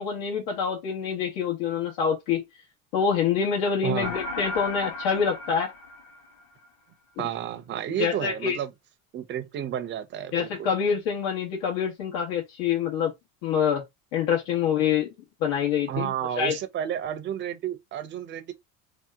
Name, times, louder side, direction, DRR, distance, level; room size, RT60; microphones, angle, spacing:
voice 1, 0.0-2.4 2.9-5.7 8.0-8.6 10.3-13.1 13.4-13.8 14.1-15.1 15.4-16.6, left 7 dB, 85° left, 1.2 m, -26 dB
voice 2, 3.8-4.1 7.2-8.7 9.1-10.5 15.9-18.5, right 10 dB, 30° right, 0.5 m, -31 dB
sound 1, 4.0-6.7, left 2 dB, 50° left, 1.0 m, -35 dB
2.8 x 2.1 x 3.4 m
cardioid pair, 140°, 41 cm